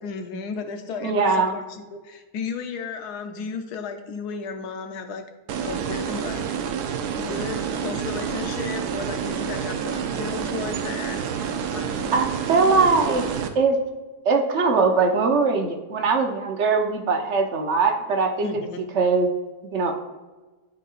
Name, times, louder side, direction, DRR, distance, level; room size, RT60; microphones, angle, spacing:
voice 1, 0.0-5.2 5.6-6.4 7.2-12.1 18.4-18.8, left 5 dB, 80° left, 6 dB, 1.3 m, -34 dB
voice 2, 1.0-1.6 12.1-13.2 13.5-13.8 14.2-18.5 18.9-19.3 19.7-20.0, right 4 dB, 55° right, 4 dB, 0.9 m, -21 dB
sound 1, 5.5-13.5, right 7 dB, 85° right, 1.2 m, -28 dB
12.0 x 4.1 x 2.4 m, 1.2 s
omnidirectional pair, 1.7 m